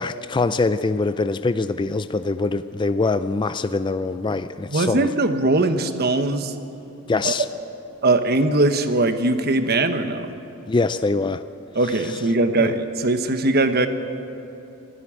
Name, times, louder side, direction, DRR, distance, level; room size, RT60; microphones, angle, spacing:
voice 1, 0.0-5.1 7.1-7.5 10.7-11.4 12.1-12.2 12.6-12.7, left 3 dB, 20° left, 12 dB, 0.4 m, -23 dB
voice 2, 4.7-6.5 7.2-7.3 8.0-10.3 11.7-13.9, right 2 dB, 45° right, 8 dB, 1.2 m, -20 dB
24.5 x 12.5 x 8.7 m, 2.8 s
head